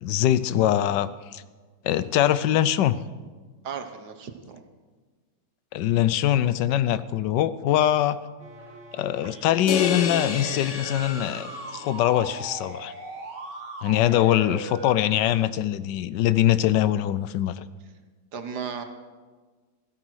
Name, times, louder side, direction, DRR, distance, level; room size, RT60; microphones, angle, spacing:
voice 1, 0.0-1.4 1.8-3.0 5.7-8.2 8.9-12.9 13.8-17.6, left 12 dB, 90° left, 16 dB, 1.3 m, -23 dB
voice 2, 3.6-4.6 18.3-18.8, right 6 dB, 70° right, 7 dB, 1.8 m, -35 dB
sound 1, 8.4-14.9, right 2 dB, 85° right, 2.5 m, -40 dB
sound 2, 9.7-12.0, left 6 dB, 50° left, 1.2 m, -30 dB
15.0 x 13.0 x 6.3 m, 1.4 s
omnidirectional pair, 1.8 m